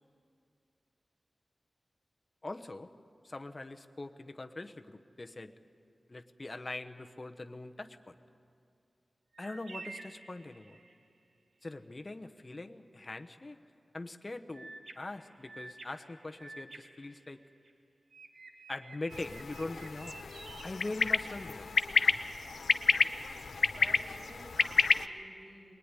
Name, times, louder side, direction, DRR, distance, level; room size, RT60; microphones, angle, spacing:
voice 1, 2.4-2.9 3.2-5.5 6.1-8.1 9.4-10.8 11.6-13.6 13.9-17.4 18.7-20.2 20.6-21.7, left 2 dB, 30° left, 6 dB, 1.1 m, -42 dB
sound 1, 9.3-11.0 14.5-17.7 18.1-21.6, right 3 dB, 80° right, 2.0 m, -51 dB
sound 2, 19.1-25.0, left 5 dB, 85° left, 0.7 m, -30 dB
voice 2, 23.7-25.7, right 1 dB, 35° right, -2 dB, 7.9 m, -51 dB
23.0 x 20.5 x 9.9 m, 2.4 s
wide cardioid pair, 120°, 0 cm